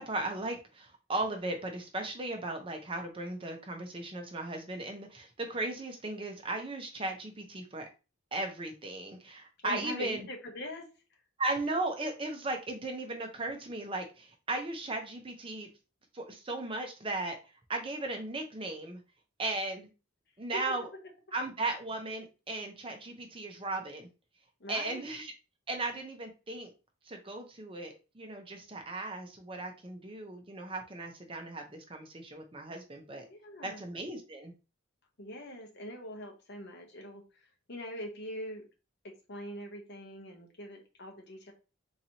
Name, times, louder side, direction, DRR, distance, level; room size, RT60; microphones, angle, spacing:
voice 1, 0.0-7.9 8.3-10.3 11.4-15.7 16.1-17.4 17.7-19.0 19.4-19.9 20.4-20.9 21.3-24.1 24.7-25.3 25.7-26.7 27.1-33.2 33.6-34.5, right 2 dB, 25° right, 4 dB, 0.6 m, -36 dB
voice 2, 9.6-11.2 20.7-20.8 24.6-25.0 33.3-33.8 35.2-38.6 39.0-41.5, left 1 dB, 55° left, 2 dB, 0.9 m, -43 dB
3.9 x 2.9 x 2.8 m, 0.31 s
head